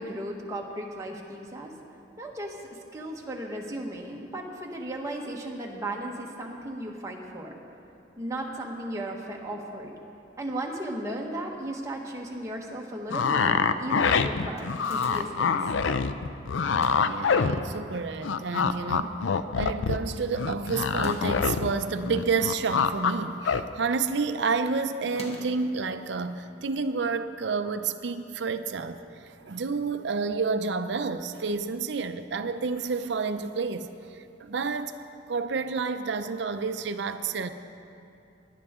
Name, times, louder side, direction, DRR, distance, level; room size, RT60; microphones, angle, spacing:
voice 1, 0.0-1.7 2.2-7.6 8.2-9.9 10.4-15.6, right 1 dB, 15° right, -1 dB, 1.2 m, -36 dB
sound 1, 13.1-18.0 18.2-21.7 22.0-23.1 23.4-23.6, left 5 dB, 75° left, 0.4 m, -25 dB
sound 2, 14.6-15.6 16.6-17.2 18.0-18.6 19.0-19.1 19.3-19.4 20.8-21.5 22.5-23.3 23.6-23.9 25.0-25.7, left 1 dB, 30° left, 1.2 m, -45 dB
voice 2, 17.0-19.2 19.6-35.0 35.3-37.5, right 4 dB, 65° right, 9 dB, 0.5 m, -30 dB
19.0 x 11.0 x 3.7 m, 2.7 s
head